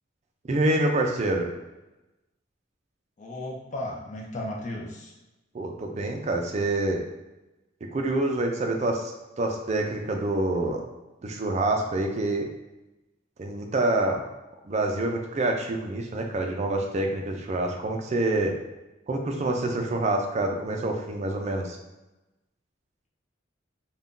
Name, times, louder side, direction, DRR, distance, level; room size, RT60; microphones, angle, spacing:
voice 1, 0.5-1.5 5.5-7.0 7.9-10.8 11.2-12.5 13.4-14.2 14.7-18.5 19.1-21.8, right 2 dB, 35° right, 2 dB, 0.4 m, -26 dB
voice 2, 3.2-5.1, left 1 dB, 40° left, -2 dB, 0.5 m, -35 dB
2.5 x 2.2 x 3.6 m, 1.0 s
head